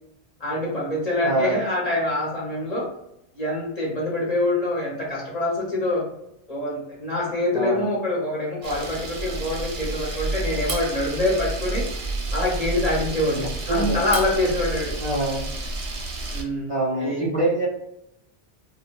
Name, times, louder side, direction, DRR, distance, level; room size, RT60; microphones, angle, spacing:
voice 1, 0.4-2.9 3.3-6.1 6.5-11.9 12.3-14.9 16.3-16.7 17.0-17.3, left 1 dB, 40° left, -5 dB, 0.8 m, -25 dB
voice 2, 1.2-1.5 7.5-7.9 13.7-14.0 15.0-15.5 16.7-17.7, right 2 dB, 40° right, -6 dB, 0.7 m, -24 dB
Camera, 8.6-16.4, right 2 dB, 75° right, 0.9 m, -30 dB
2.2 x 2.2 x 3.0 m, 0.82 s
omnidirectional pair, 1.1 m